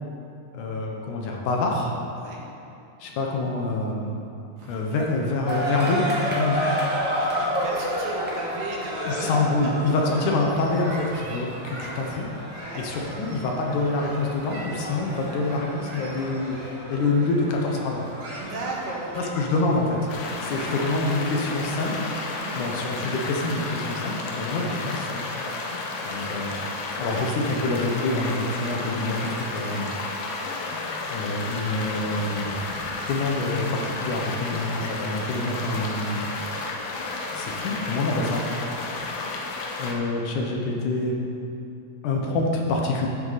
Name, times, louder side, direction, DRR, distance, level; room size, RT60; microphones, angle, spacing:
voice 1, 0.5-1.9 3.0-4.1 4.7-6.6 9.1-12.3 12.8-16.6 16.9-18.0 19.2-20.1 20.4-21.9 22.6-25.2 26.0-26.6 27.0-29.9 31.1-32.6 33.0-36.3 37.3-38.4 39.1-39.2 39.8-41.3 42.0-43.1, left 2 dB, 70° left, 0 dB, 2.4 m, -26 dB
sound 1, 4.6-20.6, right 1 dB, 70° right, 3.5 m, -44 dB
sound 2, 5.5-22.3, equal, 10° right, 0.6 m, -32 dB
voice 2, 7.2-9.7 12.6-12.9 18.4-19.3 20.5-20.7 22.4-22.6 24.6-24.8 27.0-27.3, right 2 dB, 90° right, -3 dB, 3.2 m, -36 dB
sound 3, 20.1-39.9, left 3 dB, 90° left, 2.7 m, -32 dB
12.0 x 7.8 x 4.1 m, 2.7 s
omnidirectional pair, 3.9 m